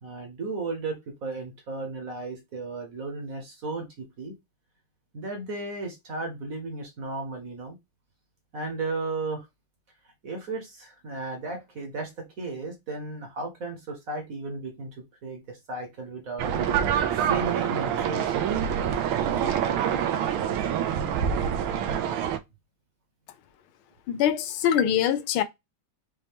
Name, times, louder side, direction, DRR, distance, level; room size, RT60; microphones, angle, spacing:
voice 1, 0.0-4.3 5.1-7.8 8.5-9.5 10.2-16.7 17.2-18.8, right 3 dB, 50° right, 1.3 m, -35 dB
sound 1, 16.4-22.4, right 8 dB, 85° right, 1.5 m, -26 dB
voice 2, 24.1-25.4, left 10 dB, 85° left, 1.5 m, -23 dB
5.5 x 2.7 x 3.5 m
omnidirectional pair, 2.2 m